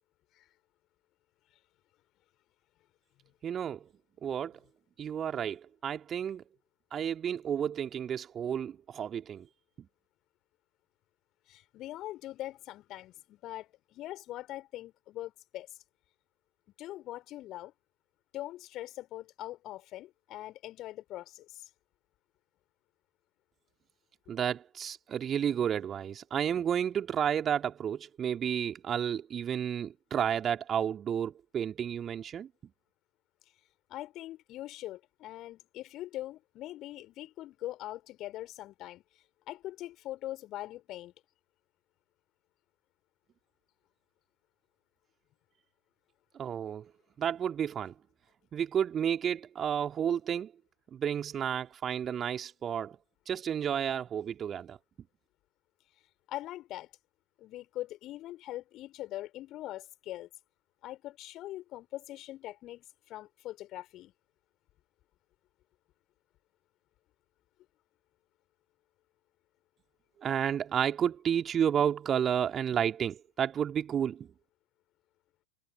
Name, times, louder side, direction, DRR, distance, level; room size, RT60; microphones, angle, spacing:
voice 1, 3.4-3.9 4.2-4.6 5.0-6.4 6.9-9.5 9.8-9.9 24.3-32.5 46.3-46.9 47.2-47.9 48.5-50.5 50.9-53.0 53.3-54.8 70.2-74.3, right 8 dB, 25° right, 2.9 m, -31 dB
voice 2, 11.5-15.8 16.8-17.7 18.3-21.7 33.9-39.0 39.5-41.1 56.3-56.9 57.4-60.3 60.8-64.1, left 15 dB, 35° left, 3.8 m, -42 dB
figure-of-eight pair, 90°, 0 cm